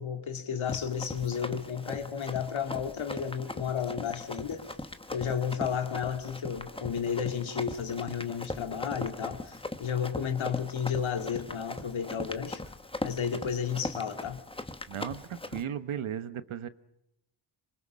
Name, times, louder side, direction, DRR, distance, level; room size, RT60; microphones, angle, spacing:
voice 1, 0.0-4.7 5.1-12.6 13.0-14.4, left 7 dB, 75° left, 2.3 m, -32 dB
Run, 0.6-15.6, left 2 dB, 10° left, 1.1 m, -40 dB
voice 2, 14.9-16.7, right 9 dB, 90° right, 1.3 m, -36 dB
26.5 x 24.0 x 6.3 m
wide cardioid pair, 145°, 47 cm